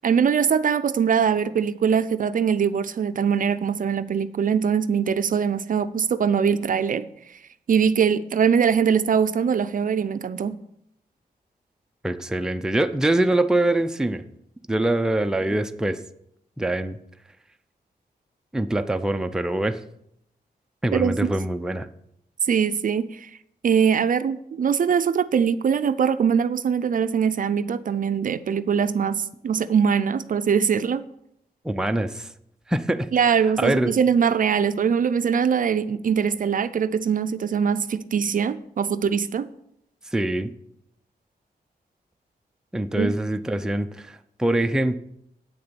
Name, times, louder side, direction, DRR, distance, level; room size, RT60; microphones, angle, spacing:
voice 1, 0.0-7.1 7.7-10.6 20.9-21.3 22.4-23.3 23.6-31.0 33.1-39.5 43.0-43.1, right 7 dB, 55° right, 13 dB, 0.5 m, -22 dB
voice 2, 12.0-14.2 14.7-16.0 16.6-17.0 18.5-19.8 20.8-21.9 31.6-32.3 32.7-33.1 33.6-33.9 40.1-40.5 42.7-45.0, right 1 dB, 5° right, 7 dB, 0.5 m, -24 dB
8.9 x 6.7 x 6.9 m, 0.74 s
wide cardioid pair, 145°, 16 cm